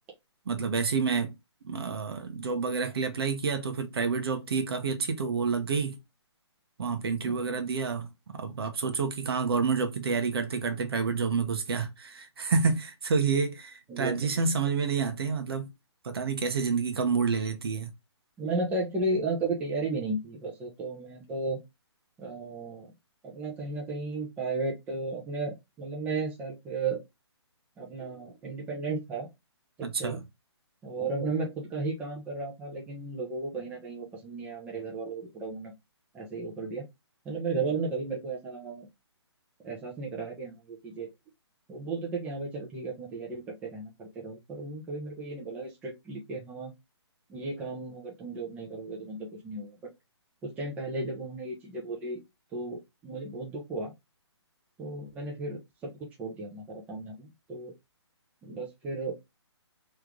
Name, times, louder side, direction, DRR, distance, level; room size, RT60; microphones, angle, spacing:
voice 1, 0.5-1.3 1.6-6.0 6.8-8.1 8.3-15.7 16.0-17.9 29.8-30.2, right 5 dB, 60° right, 1.2 m, -29 dB
voice 2, 7.2-7.6 13.9-14.4 18.4-21.6 22.2-22.9 23.2-27.0 27.8-29.3 29.8-30.2 30.8-35.7 36.1-36.8 37.2-38.9 39.6-41.1 41.7-46.7 47.3-49.7 50.4-52.2 52.5-53.9 54.8-57.7 58.4-59.2, right 3 dB, 10° right, 0.9 m, -34 dB
3.3 x 3.3 x 3.7 m
hypercardioid pair, 160°, 15 cm